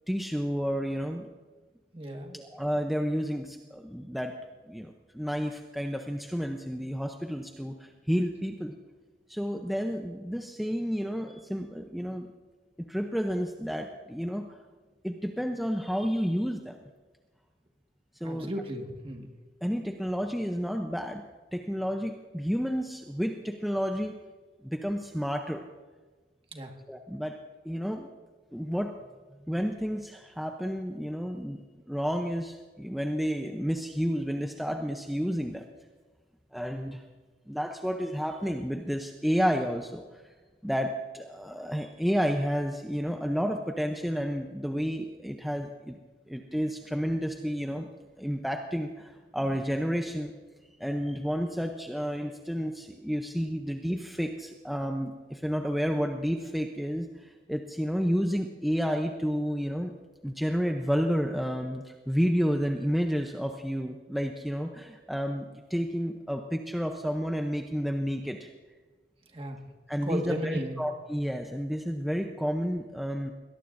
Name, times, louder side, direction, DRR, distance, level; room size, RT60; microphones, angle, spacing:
voice 1, 0.1-1.3 2.3-4.4 4.7-8.7 9.3-12.3 12.8-14.6 15.0-16.8 18.2-18.5 19.2-19.3 19.6-21.2 21.5-24.2 24.6-25.6 26.9-27.4 27.6-28.1 28.5-29.0 29.5-35.6 36.5-37.0 37.5-40.3 40.6-46.0 46.3-47.9 48.2-50.3 50.8-59.9 60.2-68.5 69.9-73.3, equal, ahead, 3 dB, 0.6 m, -31 dB
voice 2, 1.9-2.4 18.2-19.3 26.5-26.7 69.3-69.6 70.0-70.8, equal, 30° right, 3 dB, 1.6 m, -34 dB
22.0 x 18.0 x 2.6 m, 1.4 s
head